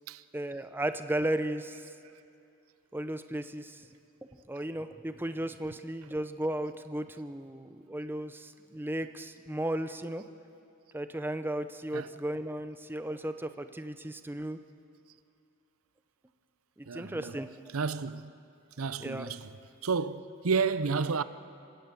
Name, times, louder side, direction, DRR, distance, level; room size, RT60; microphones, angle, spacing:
voice 1, 0.3-1.9 2.9-3.9 4.5-10.2 10.9-14.6 16.8-17.7 19.0-19.3, right 1 dB, 10° right, 0.6 m, -35 dB
voice 2, 16.9-18.3 18.8-19.5 19.8-21.2, right 5 dB, 90° right, 0.7 m, -31 dB
26.0 x 17.0 x 6.9 m
head